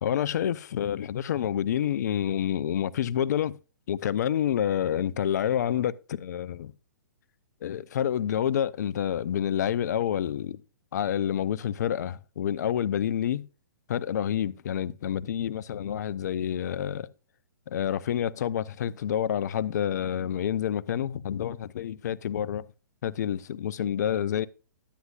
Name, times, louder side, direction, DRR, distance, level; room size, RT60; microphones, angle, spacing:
voice 1, 0.0-3.5 3.9-6.7 7.6-10.6 10.9-13.4 13.9-17.1 17.7-22.7 23.0-24.5, left 9 dB, 60° left, 0.6 m, -28 dB
11.5 x 9.4 x 2.4 m
hypercardioid pair, 125°, 10 cm